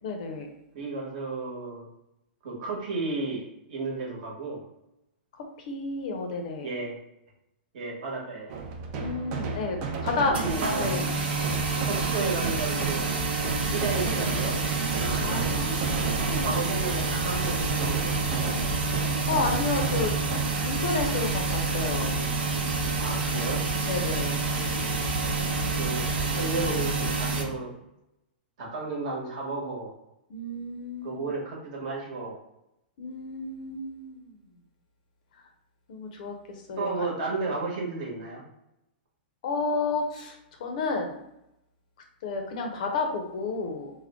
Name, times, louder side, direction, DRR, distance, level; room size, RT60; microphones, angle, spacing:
voice 1, 0.0-0.5 5.4-6.7 9.0-10.3 10.8-11.1 15.2-16.6 19.3-22.2 23.9-24.5 30.3-31.3 33.0-34.4 35.9-36.9 39.4-41.2 42.2-43.9, left 3 dB, 45° left, 3 dB, 0.6 m, -31 dB
voice 2, 0.7-1.9 2.4-4.6 6.6-7.0 7.7-8.5 10.4-10.9 11.8-13.1 13.6-14.6 16.4-18.8 23.0-23.7 24.5-24.9 25.7-27.7 28.6-29.9 31.0-32.4 36.8-38.4, right 3 dB, 45° right, -3 dB, 1.2 m, -33 dB
sound 1, 8.5-21.3, right 4 dB, 30° right, 0.4 m, -34 dB
sound 2, 10.3-27.4, right 3 dB, 70° right, 0.9 m, -28 dB
3.6 x 2.1 x 3.5 m, 0.85 s
hypercardioid pair, 170°, 6 cm